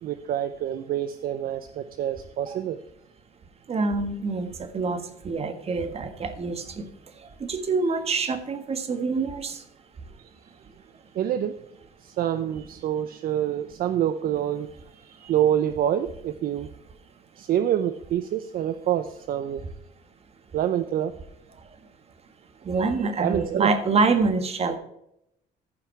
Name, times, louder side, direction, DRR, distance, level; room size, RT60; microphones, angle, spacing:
voice 1, 0.0-2.8 11.1-11.6 12.0-16.7 17.4-19.6 20.5-21.2 22.8-23.7, right 10 dB, 60° right, 10 dB, 0.7 m, -27 dB
voice 2, 3.7-6.9 7.2-9.6 22.6-24.8, right 4 dB, 35° right, 8 dB, 1.6 m, -26 dB
15.0 x 5.6 x 4.5 m, 0.78 s
cardioid pair, 110°, 17 cm